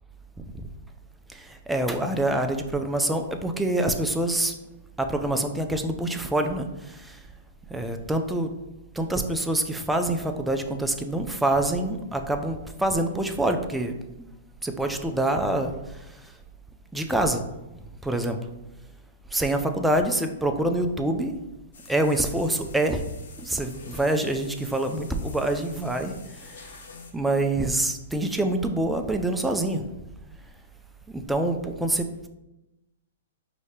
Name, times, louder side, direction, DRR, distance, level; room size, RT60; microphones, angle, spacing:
voice 1, 1.3-4.5 5.0-7.3 7.7-8.5 8.9-14.3 14.6-16.4 16.9-17.4 17.7-18.4 19.3-21.3 21.9-23.0 23.4-26.8 27.1-29.9 31.1-32.3, right 1 dB, 5° right, 5 dB, 0.4 m, -26 dB
sound 1, 21.7-27.1, left 5 dB, 75° left, 0.7 m, -48 dB
4.9 x 2.7 x 3.2 m, 0.97 s
hypercardioid pair, 135°, 0 cm